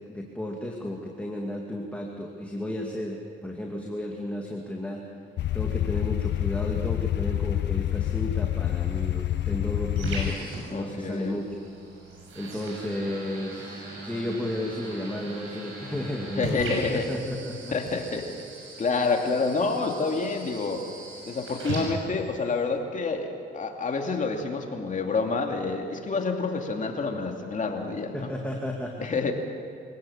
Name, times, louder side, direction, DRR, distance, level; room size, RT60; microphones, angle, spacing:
voice 1, 0.0-5.1 5.5-11.6 12.4-17.7 28.1-29.1, left 1 dB, 5° left, 0 dB, 2.4 m, -33 dB
sound 1, 5.4-10.4, left 13 dB, 65° left, 0.6 m, -27 dB
sound 2, 8.6-22.6, right 2 dB, 85° right, 7.2 m, -39 dB
voice 2, 10.7-11.4 16.4-17.1 17.7-18.3 18.8-20.8 21.2-28.3 29.0-29.3, left 4 dB, 40° left, 3 dB, 2.7 m, -28 dB
24.5 x 17.0 x 7.3 m, 2.3 s
cardioid pair, 90°, 20 cm